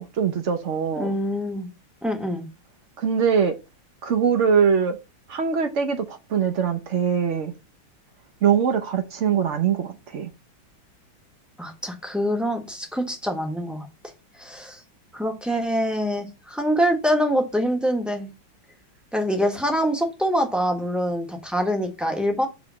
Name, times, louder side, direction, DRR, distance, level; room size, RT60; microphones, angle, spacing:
voice 1, 0.0-1.1 3.0-3.6 4.0-5.0 5.3-7.5 8.4-10.3, right 7 dB, 55° right, 0.8 m, -22 dB
voice 2, 0.9-1.7 2.0-2.5 11.6-14.1 14.4-14.8 15.1-18.3 19.1-22.5, equal, ahead, 0.8 m, -25 dB
6.7 x 3.3 x 6.1 m
omnidirectional pair, 2.2 m